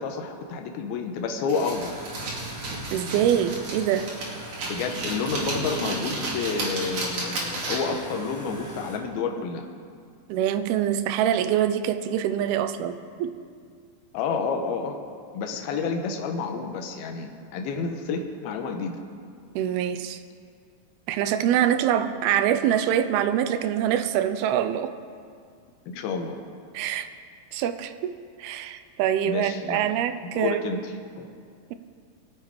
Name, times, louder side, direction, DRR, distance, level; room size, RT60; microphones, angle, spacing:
voice 1, 0.0-2.0 4.7-9.7 14.1-15.0 15.3-19.0 25.9-26.4 29.3-29.8 30.2-31.3, left 5 dB, 80° left, 4 dB, 2.9 m, -30 dB
sound 1, 1.5-8.0, right 2 dB, 55° right, 3.7 m, -33 dB
sound 2, 1.7-9.0, right 1 dB, 10° left, 1.1 m, -42 dB
voice 2, 2.9-4.1 10.3-13.4 19.6-20.2 21.1-24.9 26.7-27.1 27.5-30.8, right 10 dB, 85° right, 10 dB, 2.6 m, -25 dB
23.5 x 8.4 x 4.7 m, 2.2 s
omnidirectional pair, 4.4 m